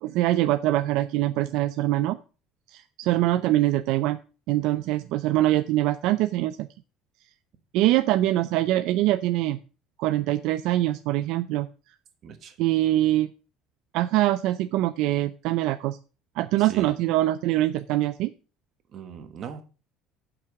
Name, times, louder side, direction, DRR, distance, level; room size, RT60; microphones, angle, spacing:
voice 1, 0.0-2.2 2.7-4.2 4.5-6.7 7.7-9.6 10.0-11.7 12.6-13.3 13.9-16.0 16.4-18.3, right 15 dB, 65° right, 11 dB, 0.5 m, -23 dB
voice 2, 12.2-12.5 16.6-16.9 18.9-19.6, right 7 dB, 35° right, 8 dB, 1.4 m, -39 dB
7.8 x 6.0 x 6.8 m, 0.36 s
cardioid pair, 170°, 0 cm